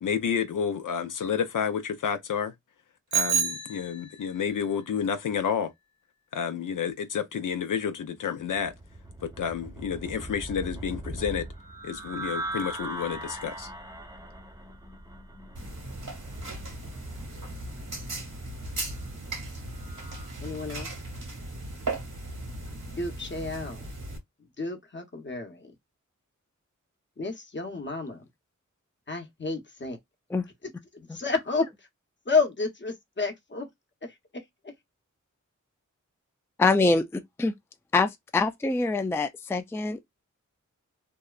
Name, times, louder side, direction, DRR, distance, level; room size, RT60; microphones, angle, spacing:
voice 1, 0.0-2.5 3.1-5.7 6.3-8.7 9.2-11.5 11.8-13.7, left 7 dB, 80° left, 0.5 m, -30 dB
Bicycle bell, 3.1-4.4, right 6 dB, 60° right, 0.9 m, -28 dB
sound 1, 8.5-20.4, right 1 dB, 10° right, 0.7 m, -40 dB
sound 2, 15.6-24.2, right 2 dB, 80° right, 1.4 m, -37 dB
voice 2, 20.4-21.0 22.9-23.8 24.6-25.7 27.2-28.2 29.1-30.0 30.6-31.9 32.2-33.7 34.0-34.7, left 4 dB, 35° left, 0.9 m, -31 dB
voice 3, 36.6-37.5 37.9-40.0, left 3 dB, 10° left, 0.4 m, -25 dB
2.8 x 2.1 x 2.3 m
cardioid pair, 40°, 31 cm